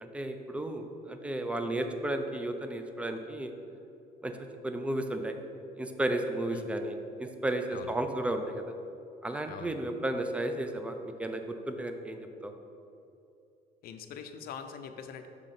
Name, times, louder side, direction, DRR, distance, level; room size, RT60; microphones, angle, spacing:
voice 1, 0.0-3.5 4.2-4.3 4.6-5.4 5.8-6.9 7.2-8.6 9.2-12.5, right 1 dB, 5° right, 6 dB, 0.5 m, -33 dB
voice 2, 13.8-15.3, left 7 dB, 65° left, 7 dB, 0.5 m, -43 dB
6.5 x 3.7 x 5.8 m, 2.7 s
cardioid pair, 110°, 17 cm